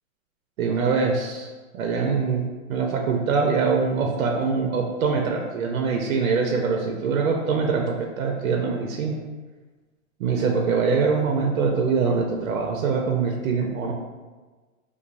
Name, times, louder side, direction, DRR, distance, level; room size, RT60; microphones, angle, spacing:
voice 1, 0.6-1.5 1.7-9.2 10.2-13.9, right 5 dB, 80° right, 2 dB, 0.6 m, -23 dB
3.0 x 2.0 x 3.9 m, 1.3 s
hypercardioid pair, 145°, 41 cm